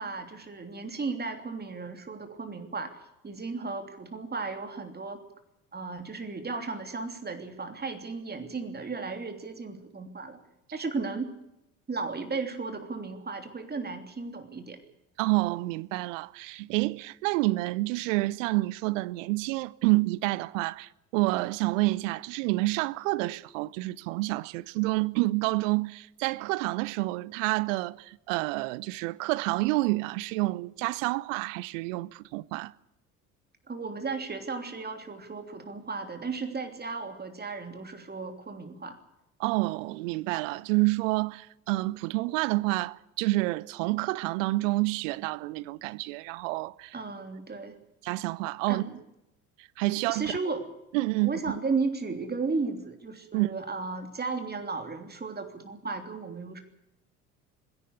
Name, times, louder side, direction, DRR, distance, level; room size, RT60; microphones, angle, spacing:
voice 1, 0.0-3.0 3.2-5.2 5.7-10.4 10.7-11.3 11.9-14.8 33.7-39.0 46.9-47.8 48.7-49.0 50.1-50.7 51.2-56.6, right 4 dB, 20° right, 3.2 m, -35 dB
voice 2, 15.2-32.7 39.4-46.9 48.0-48.8 49.8-50.4 50.9-51.6 53.3-53.6, right 21 dB, 55° right, 0.8 m, -28 dB
20.5 x 17.0 x 8.3 m
figure-of-eight pair, 60°, 45 cm